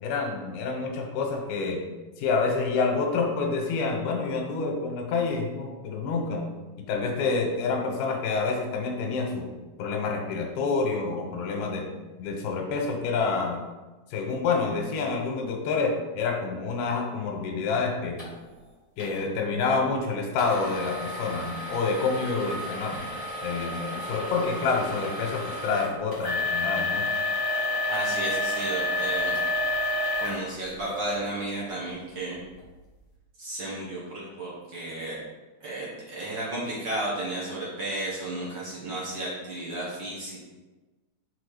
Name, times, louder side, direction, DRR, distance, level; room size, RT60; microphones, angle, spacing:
voice 1, 0.0-1.8 2.2-6.4 6.8-9.5 9.8-11.9 12.2-13.6 14.1-18.2 19.0-22.9 23.4-27.0, left 4 dB, 90° left, 2 dB, 2.9 m, -28 dB
sound 1, 18.2-18.3 19.0-19.2 20.4-31.2 31.8-31.9 32.5-32.6, left 2 dB, 40° left, 0.5 m, -30 dB
voice 2, 27.9-29.3 30.2-32.4 33.4-35.2 35.6-40.4, right 1 dB, 55° right, -7 dB, 1.2 m, -33 dB
6.0 x 4.5 x 4.9 m, 1.2 s
omnidirectional pair, 4.2 m